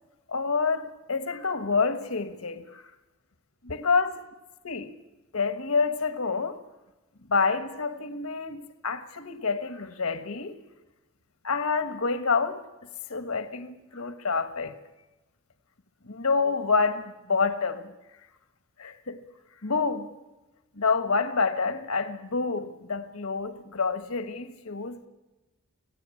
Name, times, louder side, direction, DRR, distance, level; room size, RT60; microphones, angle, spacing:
voice 1, 0.3-2.8 3.6-4.2 4.6-4.9 5.3-6.6 7.3-10.6 11.4-12.7 13.1-14.8 16.1-17.9 18.8-19.2 19.6-20.1 20.8-25.0, left 4 dB, 75° left, 1.4 m, -28 dB
26.0 x 17.0 x 8.5 m
head